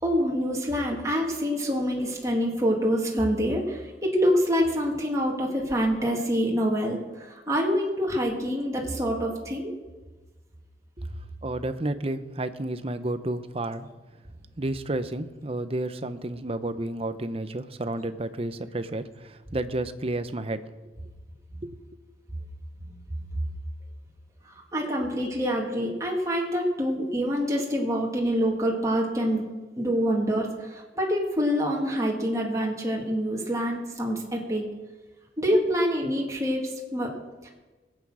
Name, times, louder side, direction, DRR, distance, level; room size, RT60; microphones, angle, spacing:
voice 1, 0.0-9.7 22.8-23.0 24.4-29.5 29.7-34.7 35.4-37.1 37.4-37.5, equal, 20° right, -2 dB, 2.2 m, -26 dB
voice 2, 11.4-13.9 14.6-20.7 21.6-21.8, right 1 dB, 35° right, 11 dB, 0.8 m, -31 dB
21.0 x 8.4 x 6.3 m, 1.3 s
head